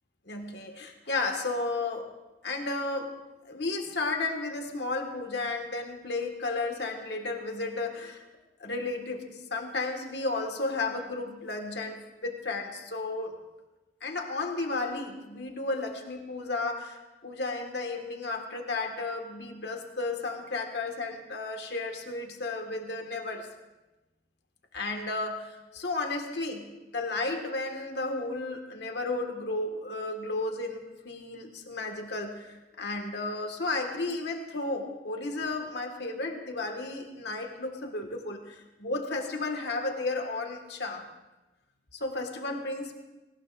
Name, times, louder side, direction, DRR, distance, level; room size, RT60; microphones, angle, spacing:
voice 1, 0.3-2.1 2.4-3.1 3.4-8.2 8.6-13.4 14.0-23.5 24.7-41.0 41.9-43.0, left 3 dB, 65° left, 4 dB, 1.6 m, -33 dB
19.0 x 18.0 x 2.5 m, 1.1 s
head